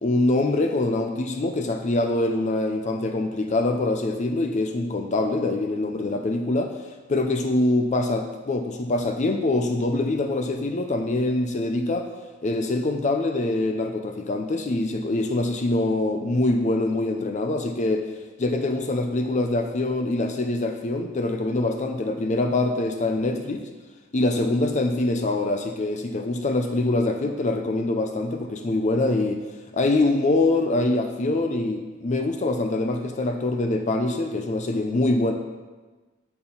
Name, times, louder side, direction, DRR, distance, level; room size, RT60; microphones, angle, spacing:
voice 1, 0.0-6.8 7.1-12.1 12.4-23.6 24.1-29.4 29.7-35.3, left 2 dB, 35° left, 5 dB, 0.5 m, -24 dB
8.6 x 4.3 x 5.5 m, 1.3 s
head